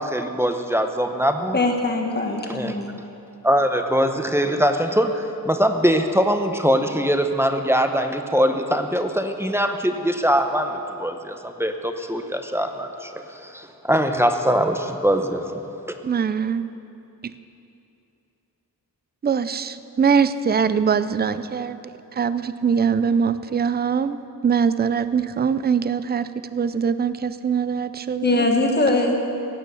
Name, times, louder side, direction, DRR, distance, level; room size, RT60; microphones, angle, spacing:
voice 1, 0.0-1.6 2.5-2.7 3.4-15.6, equal, 5° right, 6 dB, 0.8 m, -22 dB
voice 2, 1.5-2.9 28.2-29.1, left 2 dB, 25° left, 2 dB, 1.5 m, -21 dB
voice 3, 16.0-16.7 19.2-21.8 22.1-24.2 24.4-28.5, right 6 dB, 30° right, 13 dB, 0.4 m, -22 dB
16.5 x 8.9 x 6.9 m, 2.8 s
wide cardioid pair, 125°, 36 cm